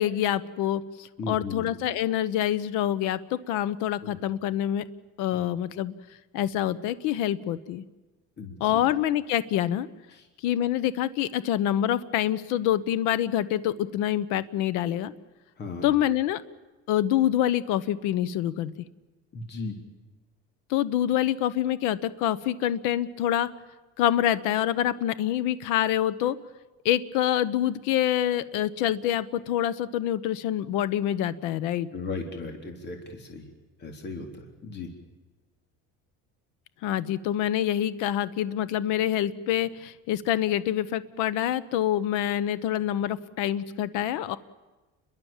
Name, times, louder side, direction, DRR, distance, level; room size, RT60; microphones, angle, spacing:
voice 1, 0.0-4.8 5.2-5.9 6.3-7.8 8.6-9.9 10.4-15.1 15.8-16.4 16.9-18.7 20.7-23.5 24.0-26.4 26.8-31.9 36.8-44.4, left 11 dB, 85° left, 15 dB, 1.2 m, -26 dB
voice 2, 1.2-1.6 4.0-4.2 5.3-5.4 8.4-8.9 10.1-10.3 15.6-15.9 19.3-19.8 31.9-33.5 33.8-34.9, left 3 dB, 35° left, 4 dB, 3.9 m, -36 dB
30.0 x 23.0 x 7.5 m, 1.2 s
cardioid pair, 150°, 30 cm